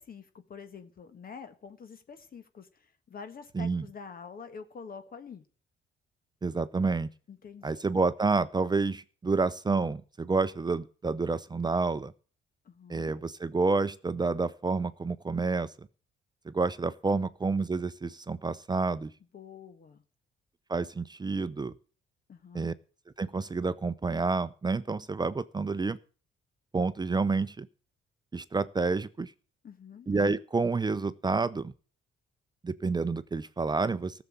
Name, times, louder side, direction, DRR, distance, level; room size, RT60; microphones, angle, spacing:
voice 1, 0.0-5.4 7.3-7.8 12.6-13.1 19.3-20.0 22.3-22.7 29.6-30.1, left 6 dB, 45° left, 9 dB, 1.4 m, -47 dB
voice 2, 3.5-3.9 6.4-7.1 7.6-12.1 12.9-15.7 16.5-19.1 20.7-21.7 22.5-22.7 23.2-26.0 26.7-27.7 28.3-29.3 30.1-31.7 32.6-34.2, right 4 dB, 20° right, 13 dB, 0.6 m, -29 dB
14.0 x 7.0 x 8.6 m, 0.39 s
cardioid pair, 90°, 20 cm